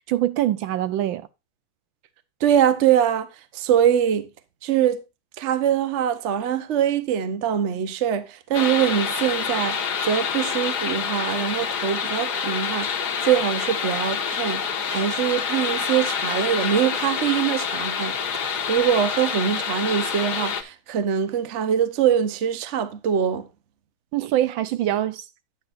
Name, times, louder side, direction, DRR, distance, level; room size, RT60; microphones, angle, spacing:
voice 1, 0.1-1.3 24.1-25.3, right 13 dB, 75° right, 1.4 m, -24 dB
voice 2, 2.4-3.3 3.5-4.3 4.6-5.0 5.4-12.9 13.2-14.6 14.9-23.5, right 9 dB, 45° right, 1.0 m, -23 dB
sound 1, 8.5-20.6, left 6 dB, 55° left, 1.7 m, -27 dB
9.7 x 9.0 x 2.5 m
omnidirectional pair, 2.2 m